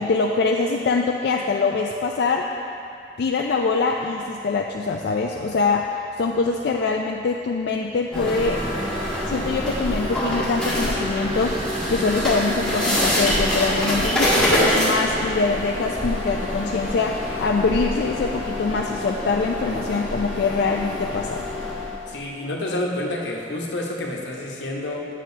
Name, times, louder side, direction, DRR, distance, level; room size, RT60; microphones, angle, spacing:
voice 1, 0.0-2.5 3.2-5.9 6.2-8.6 9.3-11.6 11.9-21.4, left 4 dB, 65° left, 1 dB, 0.3 m, -23 dB
sound 1, 8.1-22.1, equal, 5° left, 1.5 m, -25 dB
voice 2, 22.1-25.1, left 1 dB, 85° left, -1 dB, 1.0 m, -29 dB
8.5 x 7.3 x 2.7 m, 2.6 s
head